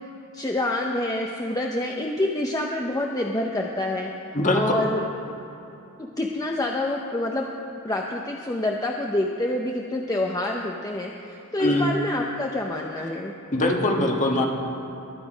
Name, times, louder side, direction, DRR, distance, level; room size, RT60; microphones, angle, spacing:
voice 1, 0.3-5.0 6.0-7.5 7.8-13.3, left 1 dB, 15° left, 0 dB, 0.6 m, -27 dB
voice 2, 4.3-4.7 11.6-11.9 13.5-14.5, left 1 dB, 35° left, 1 dB, 1.5 m, -22 dB
22.5 x 8.6 x 5.0 m, 3.0 s
head